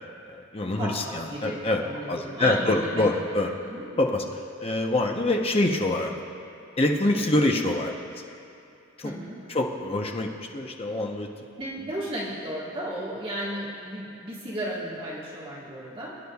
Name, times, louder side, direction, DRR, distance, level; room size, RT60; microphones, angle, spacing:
voice 1, 0.3-1.8 2.1-3.5 4.0-6.2 6.8-8.2 9.0-9.1 9.5-11.3, left 2 dB, 30° left, 2 dB, 0.8 m, -25 dB
voice 2, 0.8-3.1 3.6-3.9 9.0-9.5 11.6-16.2, right 1 dB, 25° right, -7 dB, 1.6 m, -34 dB
22.5 x 9.9 x 2.4 m, 2.8 s
head